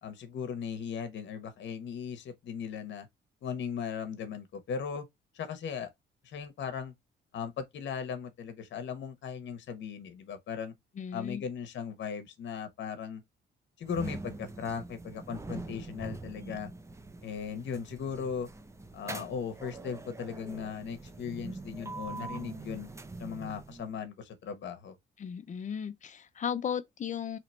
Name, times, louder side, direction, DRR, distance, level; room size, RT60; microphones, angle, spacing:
voice 1, 0.0-3.1 3.4-5.1 5.3-5.9 6.2-6.9 7.3-10.7 11.1-13.2 13.8-16.7 17.2-18.5 18.9-22.9 23.2-25.0, left 7 dB, 65° left, 1.0 m, -38 dB
voice 2, 11.0-11.4 25.2-27.4, left 8 dB, 40° left, 0.5 m, -35 dB
sound 1, 13.8-24.0, right 2 dB, 15° right, 0.5 m, -43 dB
3.0 x 2.8 x 4.3 m
cardioid pair, 90°, 20 cm